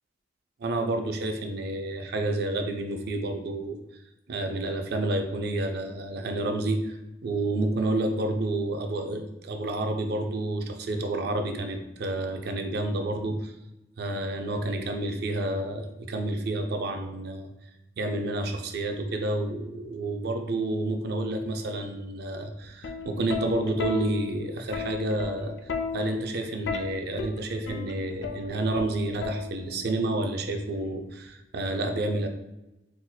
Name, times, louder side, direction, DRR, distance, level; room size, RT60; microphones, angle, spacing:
voice 1, 0.6-3.8 4.3-13.5 14.0-17.5 18.0-25.5 25.9-32.3, right 2 dB, 60° right, 5 dB, 0.4 m, -29 dB
Plucked string instrument, 22.6-29.9 30.9-31.3, left 5 dB, 70° left, 0.4 m, -35 dB
3.9 x 2.9 x 2.2 m, 0.95 s
head